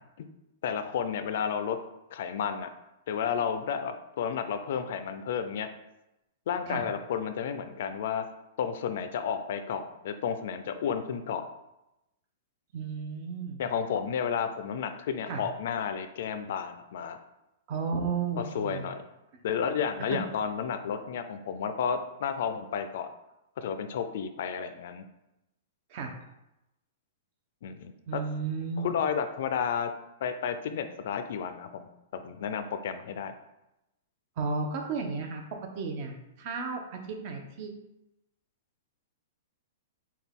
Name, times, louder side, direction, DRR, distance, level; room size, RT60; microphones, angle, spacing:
voice 1, 0.6-1.8 2.1-2.7 3.1-5.7 6.5-8.3 8.6-11.5 13.6-17.2 18.4-19.0 19.4-23.1 23.6-25.0 27.6-28.2 28.8-29.9 30.2-33.3, left 7 dB, 60° left, 9 dB, 0.4 m, -32 dB
voice 2, 12.7-13.6 15.3-15.4 17.7-18.9 20.1-20.2 25.9-26.1 28.1-29.0 34.4-35.4 35.8-37.7, right 4 dB, 40° right, 3 dB, 0.7 m, -33 dB
5.9 x 2.3 x 3.6 m, 0.92 s
hypercardioid pair, 160°, 0 cm